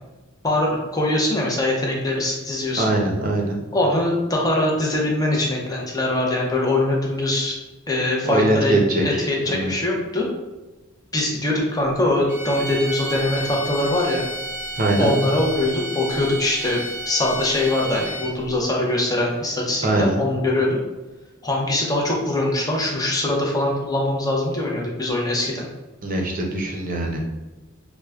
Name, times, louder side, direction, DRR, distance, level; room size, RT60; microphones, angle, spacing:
voice 1, 0.4-2.9 3.7-7.6 7.9-8.7 9.0-10.3 11.1-14.2 15.0-16.8 17.1-20.8 21.4-25.6, left 1 dB, 20° left, -2 dB, 0.6 m, -22 dB
voice 2, 2.8-3.6 8.2-9.7 14.8-15.1 19.8-20.2 26.0-27.2, right 1 dB, 40° right, 0 dB, 0.6 m, -22 dB
sound 1, 12.3-18.5, right 1 dB, 10° right, 0.9 m, -32 dB
4.6 x 2.1 x 2.3 m, 1.1 s
head